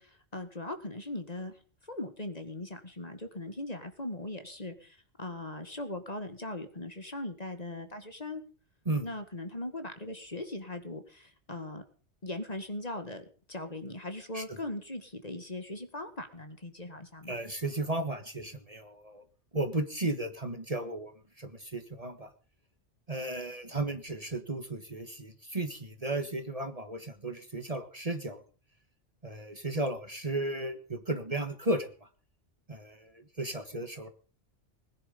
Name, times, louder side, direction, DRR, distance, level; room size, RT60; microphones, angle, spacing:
voice 1, 0.0-1.6 1.9-8.4 9.0-11.8 12.2-17.3, left 2 dB, 35° left, 8 dB, 1.9 m, -39 dB
voice 2, 17.3-19.2 19.5-21.1 21.4-22.3 23.1-28.4 29.2-32.1 32.7-34.1, right 2 dB, 30° right, 8 dB, 1.6 m, -34 dB
20.5 x 10.5 x 5.3 m, 0.41 s
omnidirectional pair, 1.2 m